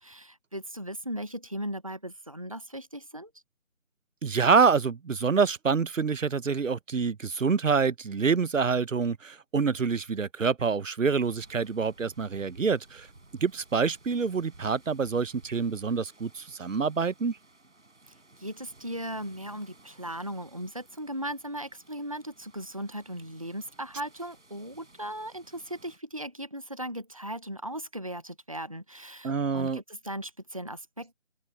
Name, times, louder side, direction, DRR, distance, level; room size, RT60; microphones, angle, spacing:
voice 1, 0.0-3.3 18.4-31.1, right 1 dB, 30° right, 0.7 m, -37 dB
voice 2, 4.2-13.1 13.4-17.4 29.2-29.8, right 5 dB, 90° right, 0.8 m, -26 dB
sound 1, 11.1-26.0, right 2 dB, 70° right, 6.2 m, -57 dB
open air
figure-of-eight pair, 165°, 37 cm